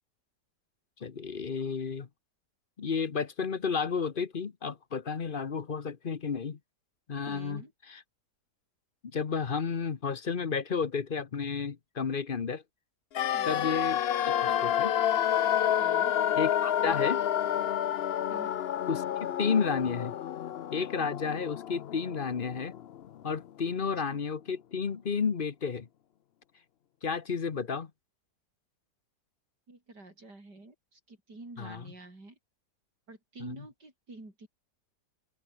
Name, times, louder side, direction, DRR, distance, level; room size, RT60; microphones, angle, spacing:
voice 1, 1.0-2.1 2.8-6.6 7.1-7.6 7.9-8.0 9.1-12.6 13.4-14.9 16.3-17.2 18.9-19.0 19.4-20.1 20.7-22.7 23.2-25.9 27.0-27.9 31.6-31.8, left 5 dB, 35° left, 1.0 m, -32 dB
voice 2, 7.3-7.7 13.3-13.7 15.8-16.2 18.3-18.6 24.1-24.2 29.7-32.4 33.1-34.5, right 2 dB, 70° right, 6.8 m, -48 dB
sound 1, 13.1-23.1 23.3-23.4, left 10 dB, 80° left, 0.5 m, -29 dB
open air
omnidirectional pair, 1.9 m